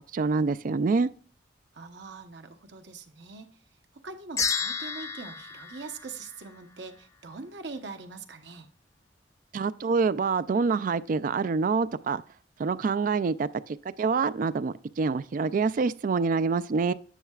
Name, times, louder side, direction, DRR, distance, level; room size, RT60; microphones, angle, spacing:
voice 1, 0.1-1.1 9.5-12.2 12.6-16.9, right 4 dB, 45° right, 0.3 m, -26 dB
voice 2, 1.7-3.5 3.9-8.7, right 4 dB, 70° right, 1.0 m, -42 dB
sound 1, 4.4-6.8, left 5 dB, 20° left, 0.7 m, -32 dB
10.0 x 6.5 x 2.4 m
head